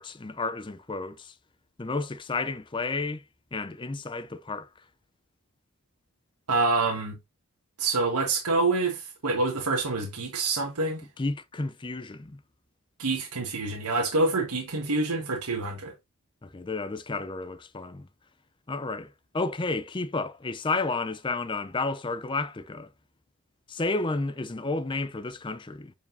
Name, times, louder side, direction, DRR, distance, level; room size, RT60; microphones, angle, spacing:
voice 1, 0.0-1.3 1.8-3.2 3.5-4.7 11.2-12.4 16.4-18.1 18.7-22.9 23.7-25.9, left 3 dB, 20° left, 0.5 m, -31 dB
voice 2, 6.5-7.2 7.8-11.0 13.0-15.9, right 3 dB, 90° right, 1.4 m, -26 dB
7.4 x 4.8 x 2.6 m
head